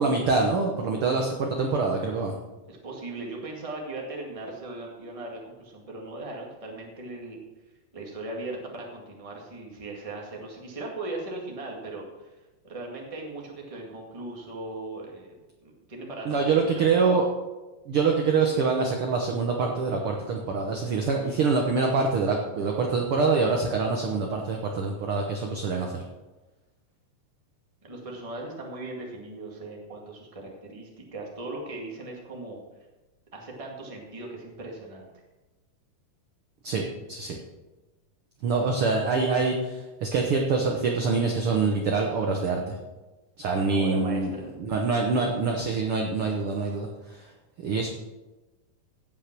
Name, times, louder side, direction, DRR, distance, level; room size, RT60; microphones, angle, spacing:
voice 1, 0.0-2.4 16.2-17.3 17.9-26.0 36.6-37.4 38.4-42.6 43.4-44.3 44.6-47.2 47.6-47.9, right 4 dB, 65° right, 2 dB, 1.4 m, -25 dB
voice 2, 2.7-7.4 7.9-12.3 12.6-15.3 15.6-16.9 27.8-32.6 33.3-35.1 43.6-44.5, right 2 dB, 15° right, -1 dB, 1.4 m, -38 dB
16.5 x 5.6 x 6.0 m, 1.1 s
omnidirectional pair, 3.7 m